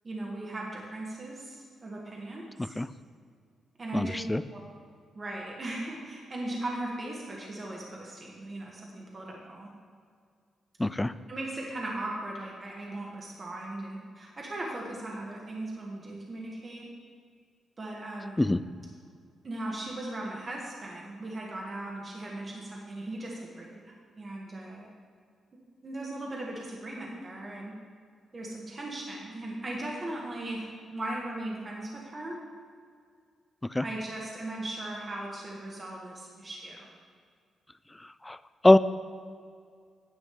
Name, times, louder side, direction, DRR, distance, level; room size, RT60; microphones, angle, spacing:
voice 1, 0.0-2.7 3.8-4.2 4.5-4.6 5.1-9.7 11.3-16.9 17.8-18.4 19.4-24.9 25.8-27.8 28.3-32.4 33.8-36.9, right 1 dB, 35° right, -2 dB, 1.8 m, -38 dB
voice 2, 3.9-4.4 10.8-11.1 18.4-18.6 33.7-33.8 38.3-38.4 38.6-38.8, left 1 dB, 15° left, 14 dB, 0.4 m, -22 dB
10.0 x 7.8 x 3.8 m, 2.1 s
cardioid pair, 80°, 0 cm